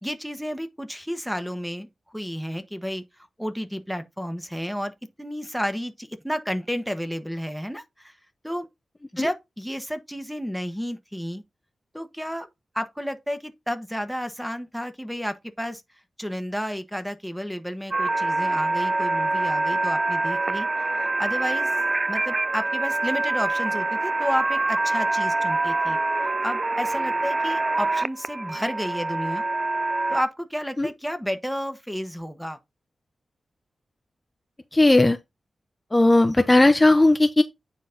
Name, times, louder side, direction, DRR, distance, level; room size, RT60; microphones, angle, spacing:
voice 1, 0.0-3.0 3.4-8.1 8.4-8.7 9.1-11.4 11.9-12.5 12.7-15.8 16.2-20.7 21.0-21.7 22.1-26.0 26.4-29.4 30.1-32.6, equal, ahead, 1.3 m, -31 dB
sound 1, 17.9-30.2, right 2 dB, 35° right, 0.3 m, -25 dB
voice 2, 34.7-35.2 35.9-37.4, left 2 dB, 20° left, 0.9 m, -17 dB
9.3 x 4.2 x 3.9 m
cardioid pair, 70°, 0 cm